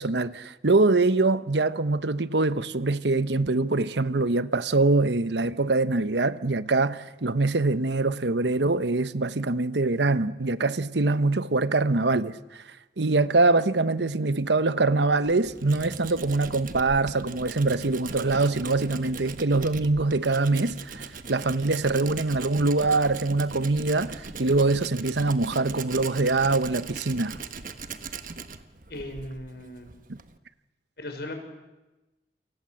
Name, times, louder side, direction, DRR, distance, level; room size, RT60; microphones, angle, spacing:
voice 1, 0.0-12.4 13.0-27.4 30.1-30.2, right 3 dB, 85° right, 1.1 m, -24 dB
Tools, 15.0-30.4, right 4 dB, 50° right, 1.4 m, -40 dB
voice 2, 28.9-29.9 31.0-31.4, left 1 dB, 65° left, 5.6 m, -37 dB
29.0 x 26.0 x 7.8 m
head